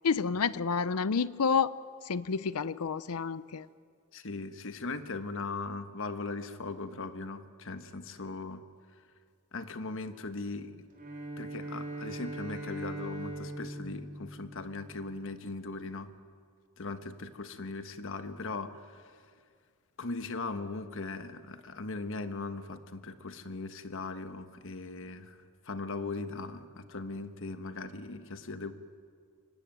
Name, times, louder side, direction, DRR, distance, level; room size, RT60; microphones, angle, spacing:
voice 1, 0.0-1.8 2.1-3.7, left 5 dB, 90° left, 17 dB, 0.6 m, -29 dB
voice 2, 4.1-8.6 9.5-10.9 11.4-16.1 16.8-19.1 20.0-25.4 25.6-28.7, left 3 dB, 65° left, 9 dB, 1.4 m, -39 dB
Bowed string instrument, 10.9-15.3, right 1 dB, 40° right, 4.5 m, -41 dB
24.5 x 19.5 x 9.2 m, 2.1 s
head